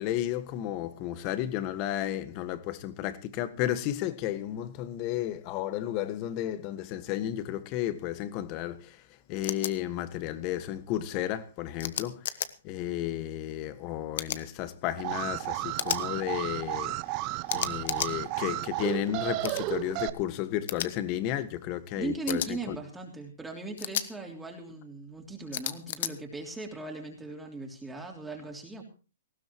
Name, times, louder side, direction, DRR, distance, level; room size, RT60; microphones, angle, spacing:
voice 1, 0.0-9.0 9.3-12.2 12.6-16.9 17.5-22.4 22.7-22.8, left 12 dB, 35° left, 1.6 m, -33 dB
sound 1, 9.4-9.7 11.8-12.5 14.1-14.4 15.8-16.0 17.5-18.1 19.4-19.6 20.7-20.9 22.3-22.5 23.8-24.1 25.5-26.1, left 10 dB, 55° left, 1.3 m, -32 dB
Alarm, 15.0-20.1, right 18 dB, 35° right, 0.9 m, -33 dB
voice 2, 21.9-28.8, right 3 dB, 5° right, 3.2 m, -38 dB
19.0 x 15.5 x 3.0 m
hypercardioid pair, 140°, 0 cm